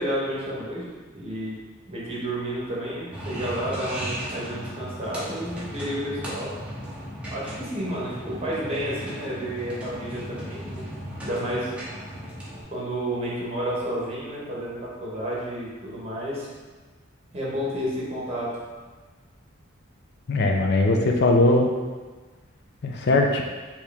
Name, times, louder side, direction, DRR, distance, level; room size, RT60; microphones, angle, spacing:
voice 1, 0.0-1.6 1.9-6.5 7.3-10.9 11.2-11.7 12.7-16.5 17.3-18.5, equal, 30° right, -6 dB, 1.1 m, -31 dB
sound 1, 3.1-12.6, equal, 5° right, 0.8 m, -36 dB
voice 2, 20.3-21.7 22.8-23.4, left 2 dB, 55° left, 2 dB, 0.4 m, -20 dB
4.6 x 2.9 x 3.4 m, 1.3 s
head